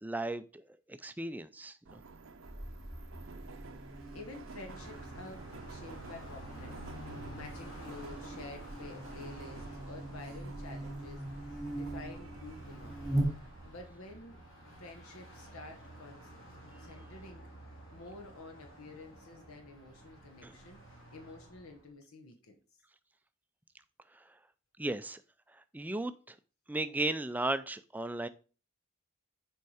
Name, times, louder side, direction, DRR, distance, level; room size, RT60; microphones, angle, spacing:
voice 1, 0.0-0.6 0.9-2.0 20.4-20.5 24.8-25.2 25.7-26.3 26.7-28.3, right 2 dB, 10° right, 0.3 m, -35 dB
Subway metro underground, 1.9-13.9, right 3 dB, 65° right, 0.6 m, -51 dB
Buzz, 2.4-13.8, right 1 dB, 15° left, 2.3 m, -41 dB
voice 2, 4.1-13.2 13.6-14.4 14.6-17.5 17.9-22.5, left 2 dB, 80° left, 1.2 m, -50 dB
Car passing by, 4.7-21.9, right 1 dB, 60° left, 2.7 m, -51 dB
6.8 x 4.6 x 4.8 m
head